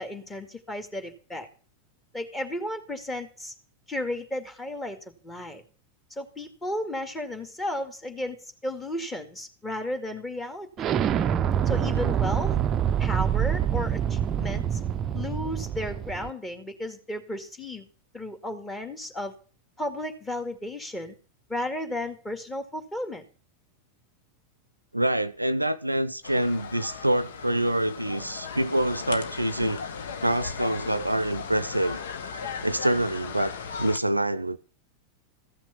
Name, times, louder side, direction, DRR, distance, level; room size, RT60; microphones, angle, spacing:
voice 1, 0.0-1.5 2.1-3.5 3.9-5.0 5.2-5.6 6.2-10.9 11.7-12.6 13.0-14.8 15.1-17.9 18.1-19.3 19.8-21.2 21.5-23.2, left 1 dB, 15° left, 2.1 m, -34 dB
Explosion, 10.8-16.3, right 9 dB, 30° right, 0.5 m, -26 dB
voice 2, 24.9-29.8 30.2-32.0 32.6-33.5 33.8-34.6, right 1 dB, 85° right, 0.5 m, -26 dB
sound 1, 26.2-34.0, left 6 dB, 60° left, 1.2 m, -37 dB
14.5 x 6.0 x 7.0 m
figure-of-eight pair, 90°, 0 cm